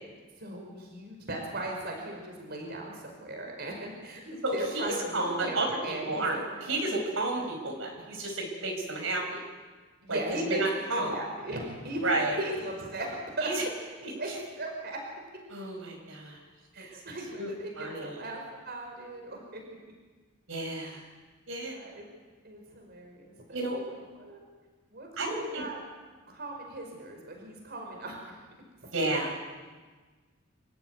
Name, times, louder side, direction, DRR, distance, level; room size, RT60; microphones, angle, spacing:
voice 1, 0.4-6.8 10.0-12.0 12.4-13.5 14.0-15.0 16.7-19.6 20.8-21.0 21.6-22.1 22.4-23.6 24.2-24.4 24.9-25.8 26.3-28.3, right 1 dB, 55° right, 1 dB, 5.2 m, -38 dB
voice 2, 4.4-9.4 10.1-10.2 10.5-11.2 12.0-12.4 13.4-13.5 14.0-14.1 15.5-16.4 17.4-17.5 17.8-18.2 20.5-21.0 21.5-21.7 23.5-23.8 25.2-25.6 28.9-29.4, right 2 dB, 75° right, 1 dB, 5.5 m, -31 dB
27.0 x 14.5 x 9.5 m, 1.4 s
head